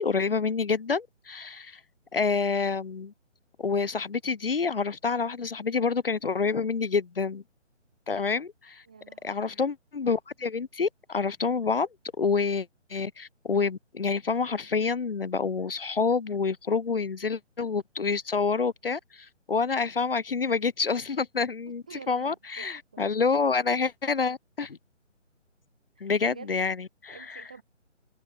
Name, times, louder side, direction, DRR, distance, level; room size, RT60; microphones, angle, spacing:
voice 1, 0.0-1.8 2.1-3.1 3.6-7.4 8.1-8.8 9.2-11.9 12.2-24.8 26.0-27.4, left 5 dB, 50° left, 0.9 m, -28 dB
voice 2, 8.9-9.5 21.9-23.0 26.0-26.5 27.1-27.6, right 6 dB, 5° right, 0.7 m, -48 dB
figure-of-eight pair, 150°, 37 cm